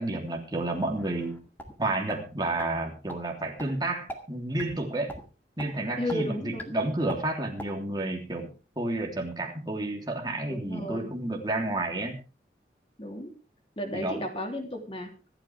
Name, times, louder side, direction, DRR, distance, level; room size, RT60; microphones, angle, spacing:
voice 1, 0.0-1.4 1.8-5.1 5.6-8.5 8.8-12.2 13.9-14.2, right 2 dB, 25° right, 1 dB, 3.2 m, -31 dB
sound 1, 1.0-1.7 2.1-2.2 2.6-2.7 3.1-3.2 3.6-3.7 4.1-4.2 4.6-4.8 5.1-5.2 5.6-5.7 6.1-6.2 6.6-6.7 7.1-7.2 7.6-7.7, equal, 10° left, 2.0 m, -39 dB
voice 2, 6.0-6.7 10.5-11.1 13.0-13.3 13.8-15.1, equal, 30° left, 3 dB, 3.3 m, -33 dB
25.5 x 8.9 x 3.5 m, 0.33 s
head